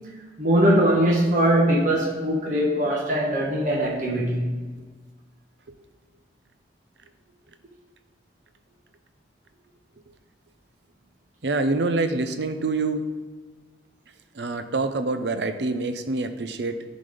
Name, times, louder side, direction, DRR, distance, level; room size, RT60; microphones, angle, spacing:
voice 1, 0.4-4.5, right 1 dB, 45° right, -3 dB, 1.3 m, -21 dB
voice 2, 11.4-13.1 14.3-16.8, right 3 dB, 75° right, 9 dB, 0.7 m, -26 dB
11.0 x 4.1 x 5.1 m, 1.4 s
head